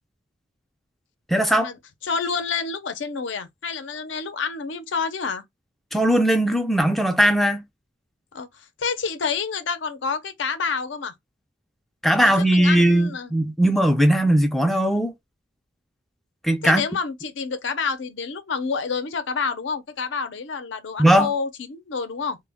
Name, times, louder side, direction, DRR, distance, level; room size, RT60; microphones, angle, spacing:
voice 1, 1.3-1.7 5.9-7.6 12.0-15.1 16.4-16.8 21.0-21.3, right 1 dB, ahead, 0.3 m, -19 dB
voice 2, 2.0-5.4 8.3-11.1 12.2-13.3 16.6-22.4, left 5 dB, 80° left, 0.5 m, -28 dB
2.1 x 2.1 x 3.3 m
head